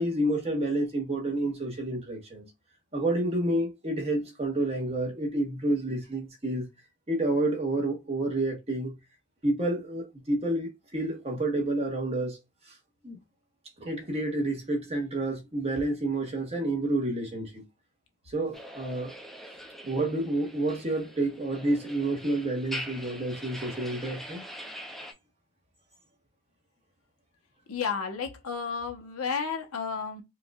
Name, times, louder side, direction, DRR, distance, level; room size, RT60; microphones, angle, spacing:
voice 1, 0.0-2.4 2.9-6.6 7.1-8.9 9.4-12.4 13.0-13.2 13.8-17.6 18.3-19.1 19.8-24.4, right 1 dB, 30° right, 1.1 m, -29 dB
sound 1, 18.5-25.1, equal, ahead, 0.4 m, -43 dB
voice 2, 27.7-30.2, left 6 dB, 85° left, 0.8 m, -32 dB
4.6 x 2.4 x 2.3 m
head